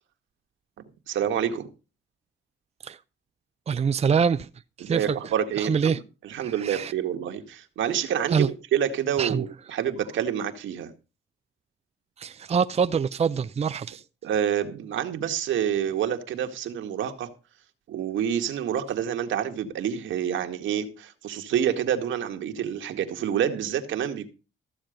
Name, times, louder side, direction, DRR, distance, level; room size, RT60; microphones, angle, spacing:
voice 1, 1.1-1.7 4.8-5.9 6.2-10.9 14.2-17.3 17.9-24.3, right 9 dB, 75° right, 1.9 m, -28 dB
voice 2, 3.7-4.5 4.8-5.2 5.6-6.0 6.3-6.9 8.3-8.5 9.2-9.4 12.2-14.0, right 6 dB, 35° right, 0.6 m, -25 dB
14.5 x 7.4 x 5.1 m
cardioid pair, 90°, 20 cm